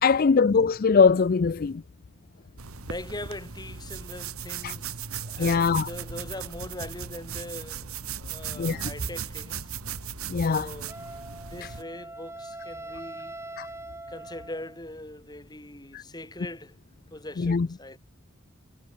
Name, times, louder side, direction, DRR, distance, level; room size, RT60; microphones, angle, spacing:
voice 1, 0.0-1.8 4.6-4.7 5.4-5.9 8.6-8.9 10.3-10.7 13.6-13.7 15.9-16.0 17.4-17.7, left 5 dB, 45° left, 0.4 m, -22 dB
sound 1, 2.6-11.8, right 7 dB, 90° right, 1.6 m, -37 dB
voice 2, 2.9-9.7 10.4-11.0 11.5-13.4 14.1-16.8 17.1-18.0, left 1 dB, 20° left, 5.1 m, -41 dB
Wind instrument woodwind instrument, 10.9-14.9, right 2 dB, 10° right, 1.9 m, -42 dB
head